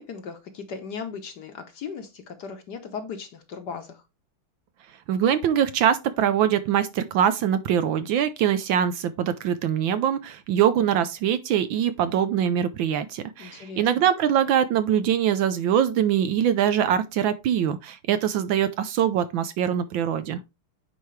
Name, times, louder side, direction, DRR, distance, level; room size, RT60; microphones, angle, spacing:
voice 1, 0.0-4.0 13.4-14.1, left 5 dB, 60° left, 1.3 m, -37 dB
voice 2, 5.1-20.4, right 9 dB, 70° right, 1.3 m, -23 dB
9.3 x 4.5 x 3.2 m
omnidirectional pair, 2.4 m